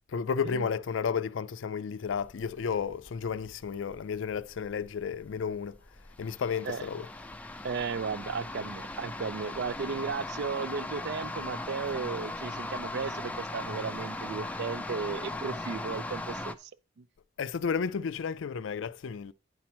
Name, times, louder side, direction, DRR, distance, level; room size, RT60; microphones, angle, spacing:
voice 1, 0.1-5.8 6.2-7.1 17.4-19.3, left 6 dB, 70° left, 0.4 m, -32 dB
sound 1, 2.1-16.5, left 2 dB, 5° left, 0.4 m, -39 dB
voice 2, 7.6-16.7 17.0-17.1, right 5 dB, 55° right, 0.4 m, -35 dB
9.3 x 6.0 x 4.3 m
head